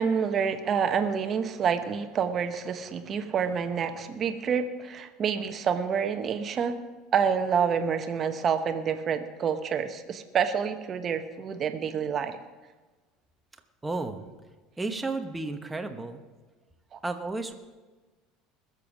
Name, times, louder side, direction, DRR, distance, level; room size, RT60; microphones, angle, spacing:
voice 1, 0.0-6.8 7.1-12.4 16.9-17.0, right 7 dB, 35° right, 8 dB, 1.0 m, -28 dB
voice 2, 13.8-14.2 14.8-16.2 17.0-17.6, right 3 dB, 10° right, 6 dB, 1.0 m, -32 dB
20.5 x 7.0 x 6.1 m, 1.3 s
cardioid pair, 135°, 0 cm